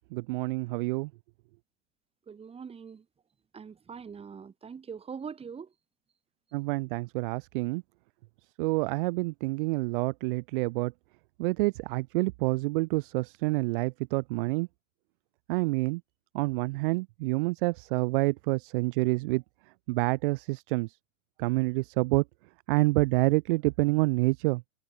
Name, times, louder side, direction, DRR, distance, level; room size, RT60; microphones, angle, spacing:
voice 1, 0.1-1.1 6.5-7.8 8.6-10.9 11.4-14.7 15.5-16.0 16.3-19.4 19.9-21.0 21.4-22.2 22.7-24.6, right 24 dB, 40° right, 0.6 m, -27 dB
voice 2, 2.3-3.1 3.5-5.7, right 6 dB, 15° right, 3.4 m, -42 dB
supercardioid pair, 145°, 43 cm